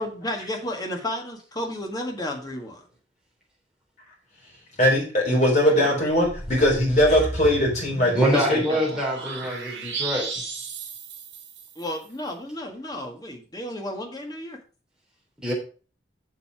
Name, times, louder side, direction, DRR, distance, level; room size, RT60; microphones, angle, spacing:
voice 1, 0.0-2.8 5.7-6.0 8.3-8.8 11.8-14.6, left 1 dB, 20° left, 2 dB, 1.7 m, -32 dB
voice 2, 4.8-8.6, equal, 40° left, -3 dB, 4.3 m, -20 dB
sound 1, 6.1-11.9, right 3 dB, 70° right, 2.9 m, -35 dB
voice 3, 8.1-10.3 15.4-15.5, equal, 5° right, -3 dB, 3.2 m, -25 dB
7.4 x 6.8 x 4.8 m, 0.37 s
head